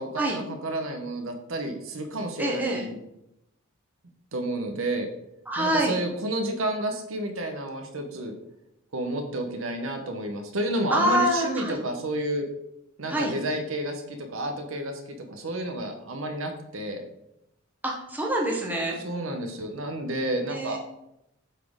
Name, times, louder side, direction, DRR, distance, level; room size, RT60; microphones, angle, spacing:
voice 1, 0.0-3.0 4.3-5.1 5.6-8.3 8.9-12.5 13.0-17.0 19.0-20.8, right 1 dB, 75° right, 5 dB, 0.9 m, -30 dB
voice 2, 2.4-2.8 5.5-6.0 10.9-11.8 13.1-13.3 17.8-19.0 20.5-20.8, right 1 dB, 10° right, -2 dB, 1.1 m, -25 dB
8.1 x 4.2 x 3.7 m, 0.84 s
head